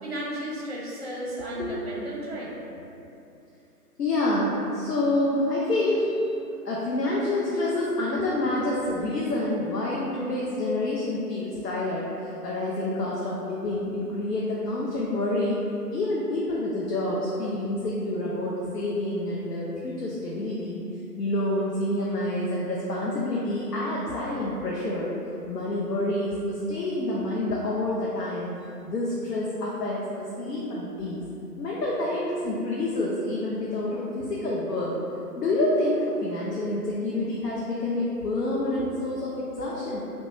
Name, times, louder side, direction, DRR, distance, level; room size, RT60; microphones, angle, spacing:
voice 1, 0.0-2.6, right 1 dB, 40° right, -5 dB, 0.6 m, -34 dB
voice 2, 4.0-6.3 6.6-15.6 15.9-20.8 21.2-25.1 25.4-28.5 28.8-31.2 31.6-35.0 35.3-40.0, left 1 dB, 75° left, -5 dB, 0.6 m, -28 dB
3.0 x 2.2 x 2.9 m, 2.7 s
figure-of-eight pair, 155°, 48 cm